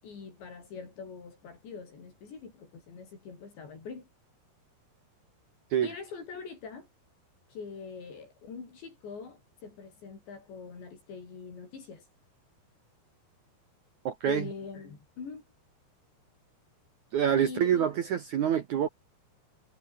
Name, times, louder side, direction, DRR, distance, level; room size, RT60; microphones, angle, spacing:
voice 1, 0.0-4.1 5.8-6.9 7.5-12.1 14.3-15.4 17.3-18.0, left 5 dB, 80° left, 8.9 m, -43 dB
voice 2, 14.1-14.5 17.1-18.9, right 9 dB, 60° right, 2.1 m, -26 dB
omnidirectional pair, 5.0 m